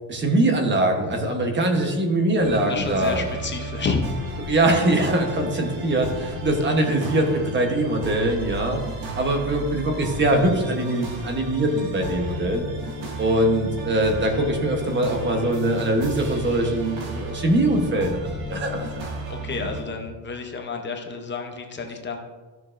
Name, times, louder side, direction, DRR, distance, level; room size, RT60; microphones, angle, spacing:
voice 1, 0.1-3.2 4.5-8.8 9.2-12.6 13.2-18.9, right 1 dB, 25° right, 3 dB, 1.0 m, -22 dB
sound 1, 2.4-19.8, right 1 dB, 80° right, 1.9 m, -34 dB
voice 2, 2.7-4.0 19.3-22.2, left 4 dB, 25° left, 3 dB, 0.6 m, -30 dB
13.5 x 6.5 x 2.5 m, 1.3 s
cardioid pair, 175°, 47 cm